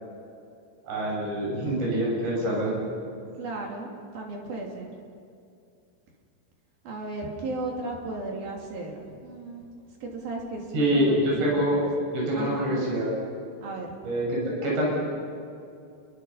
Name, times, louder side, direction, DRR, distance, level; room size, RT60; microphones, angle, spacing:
voice 1, 0.9-2.8 10.7-11.8 12.1-13.2 14.0-14.9, right 1 dB, 70° right, -4 dB, 9.5 m, -25 dB
voice 2, 3.4-3.9 4.1-4.9 6.8-9.7 10.0-11.7 12.3-12.7 13.6-13.9, right 2 dB, 55° right, 0 dB, 4.4 m, -35 dB
29.5 x 23.5 x 5.7 m, 2.5 s
omnidirectional pair, 5.2 m